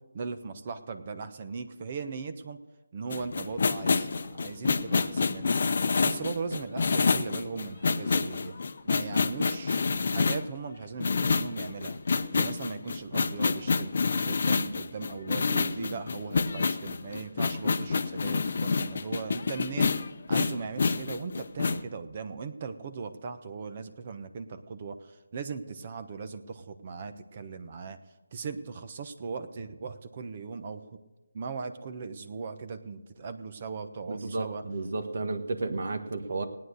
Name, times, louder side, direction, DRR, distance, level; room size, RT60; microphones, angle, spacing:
voice 1, 0.1-2.6 2.9-5.6 6.0-8.6 8.8-12.0 12.3-13.9 14.3-19.9 20.3-28.0 28.3-31.0 31.3-34.6, right 5 dB, 35° right, 10 dB, 1.0 m, -38 dB
sound 1, 3.1-10.5 11.0-21.8, left 4 dB, 50° left, 0.7 m, -28 dB
voice 2, 34.1-36.5, right 3 dB, 55° right, 8 dB, 1.6 m, -32 dB
18.0 x 9.6 x 6.6 m, 1.1 s
figure-of-eight pair, 160°, 0 cm